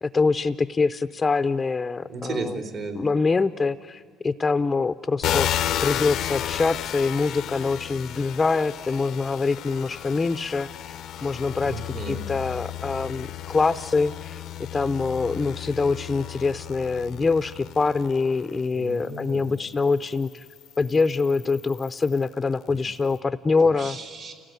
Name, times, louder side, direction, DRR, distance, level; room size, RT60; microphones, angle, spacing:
voice 1, 0.0-2.5 2.9-5.5 5.8-10.7 11.2-14.4 14.7-20.4 20.8-24.0, left 4 dB, 25° left, 10 dB, 0.5 m, -24 dB
voice 2, 2.1-3.0 11.6-12.3 18.7-19.6 23.8-24.3, right 3 dB, 60° right, 4 dB, 4.1 m, -34 dB
sound 1, 5.2-18.6 19.3-22.2, left 11 dB, 70° left, 0.6 m, -33 dB
29.5 x 17.5 x 9.4 m, 2.4 s
cardioid pair, 105°, 0 cm